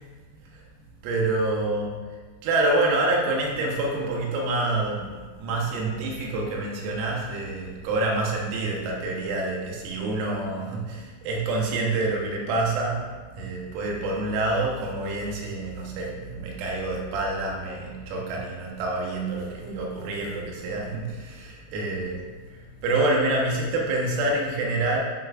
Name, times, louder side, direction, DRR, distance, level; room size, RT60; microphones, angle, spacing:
voice 1, 1.0-2.0 2.4-25.0, right 2 dB, 90° right, -1 dB, 3.9 m, -27 dB
10.5 x 5.7 x 2.5 m, 1.4 s
omnidirectional pair, 5.9 m